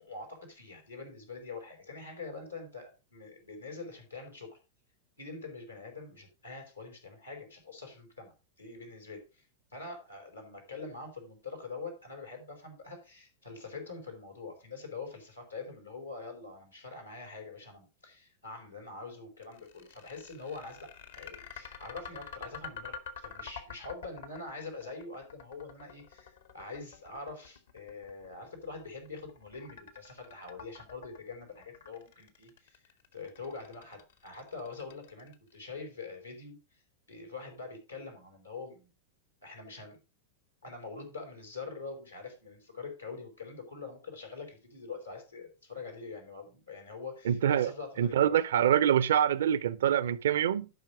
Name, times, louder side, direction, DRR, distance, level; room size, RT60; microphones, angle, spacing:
voice 1, 0.0-4.6 5.2-9.5 9.7-20.9 21.1-32.8 33.1-36.8 37.1-38.9 39.4-40.0 40.6-48.3, left 4 dB, 85° left, 4.4 m, -44 dB
sound 1, 19.4-35.5, left 6 dB, 65° left, 1.6 m, -47 dB
voice 2, 47.3-47.7 48.0-50.7, right 10 dB, 60° right, 0.5 m, -25 dB
12.0 x 5.8 x 4.9 m
figure-of-eight pair, 90°, 0 cm